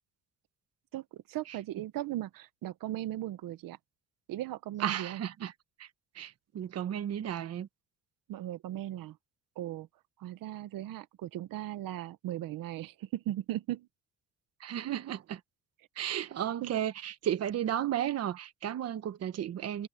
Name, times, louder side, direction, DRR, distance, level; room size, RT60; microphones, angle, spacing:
voice 1, 0.9-3.8 4.3-5.2 8.3-9.2 9.6-9.9 10.2-13.9 16.6-16.7, right 14 dB, 85° right, 1.0 m, -37 dB
voice 2, 4.8-5.5 5.8-5.9 6.1-7.7 14.6-15.4 16.0-19.9, right 10 dB, 50° right, 1.1 m, -34 dB
cardioid pair, 165°, 33 cm